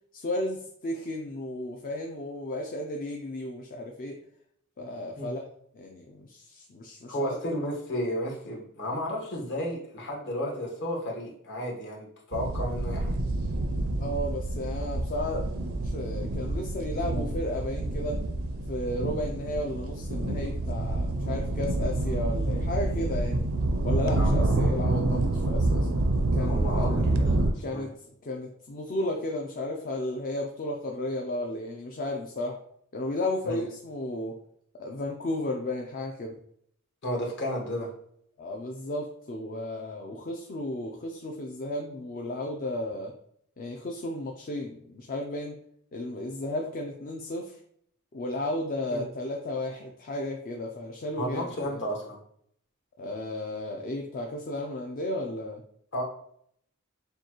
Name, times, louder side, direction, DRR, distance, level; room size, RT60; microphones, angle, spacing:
voice 1, 0.1-4.2 4.8-5.5 5.7-7.4 14.0-15.5 15.8-18.2 18.7-23.5 23.8-25.9 26.3-27.0 27.6-27.9 28.2-32.6 32.9-34.4 34.7-36.4 38.4-43.1 43.6-45.6 45.9-47.6 48.1-51.5 53.0-55.6, left 1 dB, 40° left, 2 dB, 0.5 m, -33 dB
voice 2, 7.1-13.2 24.2-24.3 26.4-27.9 33.4-33.6 37.0-37.9 48.9-49.0 51.2-52.2 55.9-56.0, equal, 55° left, -1 dB, 1.3 m, -33 dB
sound 1, 12.3-27.5, right 2 dB, 70° right, 0.5 m, -28 dB
6.6 x 2.3 x 3.0 m, 0.67 s
head